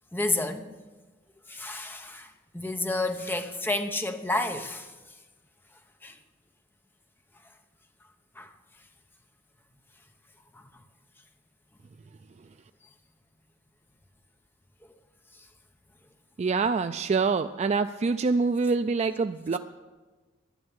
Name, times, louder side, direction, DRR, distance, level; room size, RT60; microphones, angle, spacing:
voice 1, 0.1-0.7 1.5-2.3 2.5-4.9 6.0-6.1 8.4-8.5 10.5-10.6, left 2 dB, 10° left, 0.9 m, -30 dB
voice 2, 16.4-19.6, right 4 dB, 35° right, 0.3 m, -26 dB
11.0 x 10.5 x 9.0 m
head